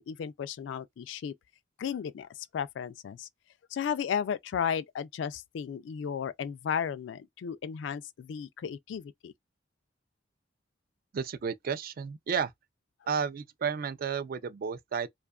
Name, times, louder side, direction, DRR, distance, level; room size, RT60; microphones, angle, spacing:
voice 1, 0.0-1.3 1.8-3.3 3.7-9.3, left 7 dB, 75° left, 0.3 m, -34 dB
voice 2, 11.1-12.5 13.1-15.1, right 6 dB, 50° right, 0.3 m, -32 dB
2.6 x 2.3 x 2.3 m
head